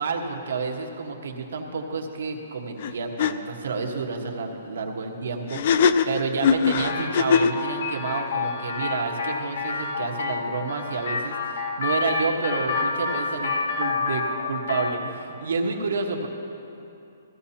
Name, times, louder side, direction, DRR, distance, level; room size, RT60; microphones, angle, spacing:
voice 1, 0.0-16.3, right 4 dB, 80° right, 2 dB, 1.3 m, -30 dB
sound 1, 2.8-2.9 3.2-3.3 5.5-7.6, left 6 dB, 40° left, 0.4 m, -20 dB
sound 2, 6.8-15.0, left 4 dB, 75° left, 1.3 m, -29 dB
15.5 x 15.5 x 2.8 m, 2.8 s
hypercardioid pair, 175°, 0 cm